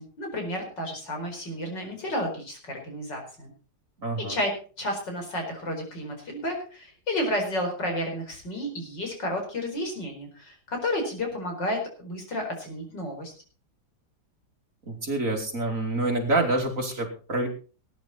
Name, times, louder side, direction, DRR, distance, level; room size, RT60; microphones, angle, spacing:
voice 1, 0.0-3.5 4.2-13.3, left 1 dB, 65° left, 3 dB, 5.4 m, -31 dB
voice 2, 4.0-4.4 14.9-17.5, right 2 dB, 45° right, 2 dB, 3.1 m, -27 dB
19.0 x 10.5 x 4.3 m, 0.37 s
omnidirectional pair, 2.0 m